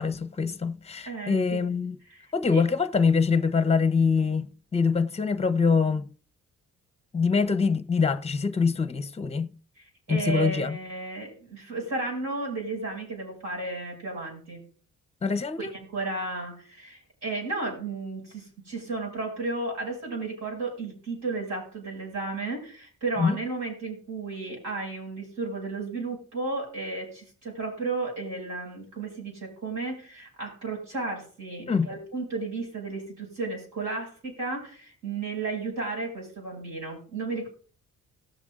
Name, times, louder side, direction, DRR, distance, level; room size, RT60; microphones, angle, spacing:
voice 1, 0.0-1.9 2.3-4.5 4.7-6.0 7.1-9.5 10.1-10.8 15.2-15.7 23.2-23.4 31.7-31.9, left 5 dB, 20° left, 0.7 m, -24 dB
voice 2, 1.1-1.6 2.1-2.6 9.8-14.6 15.6-37.5, right 3 dB, 70° right, 6.1 m, -33 dB
19.0 x 7.1 x 2.5 m
cardioid pair, 90°, 30 cm